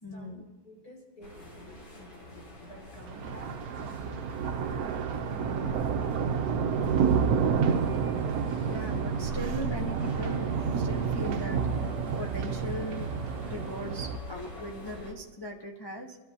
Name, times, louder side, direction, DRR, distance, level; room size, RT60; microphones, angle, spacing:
voice 1, 0.0-0.5 8.7-11.6 12.2-13.2 13.5-16.2, equal, 35° left, -1 dB, 0.3 m, -39 dB
voice 2, 0.6-7.9, right 1 dB, 55° left, -4 dB, 5.8 m, -50 dB
sound 1, 1.2-15.1, left 1 dB, 70° left, 3.1 m, -45 dB
Thunder, 3.0-14.2, right 6 dB, 65° right, 1.0 m, -29 dB
26.0 x 13.0 x 2.8 m, 1.2 s
omnidirectional pair, 2.0 m